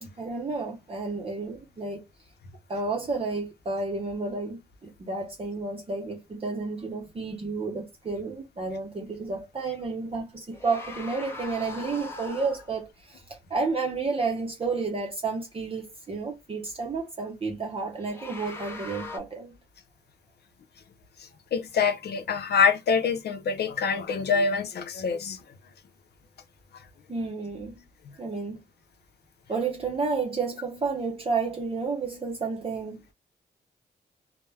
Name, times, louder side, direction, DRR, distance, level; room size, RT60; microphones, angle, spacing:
voice 1, 0.0-2.0 2.7-19.5 27.1-27.8 28.2-28.6 29.5-33.0, right 4 dB, 35° right, 0.7 m, -31 dB
sound 1, 10.5-12.8 17.9-19.2, left 3 dB, 15° left, 0.7 m, -40 dB
voice 2, 21.5-25.4 28.1-28.2, left 5 dB, 75° left, 0.6 m, -25 dB
2.2 x 2.1 x 3.2 m
cardioid pair, 90°, 17 cm